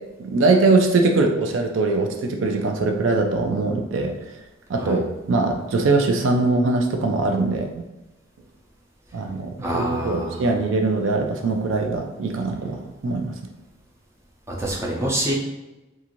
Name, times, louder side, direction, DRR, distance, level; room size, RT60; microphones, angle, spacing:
voice 1, 0.2-4.1 4.7-5.0 5.3-7.8 9.1-13.3, right 3 dB, 90° right, 3 dB, 0.4 m, -22 dB
voice 2, 9.6-10.5 14.6-15.3, right 1 dB, 15° right, -4 dB, 0.5 m, -26 dB
2.5 x 2.5 x 2.9 m, 1.1 s
head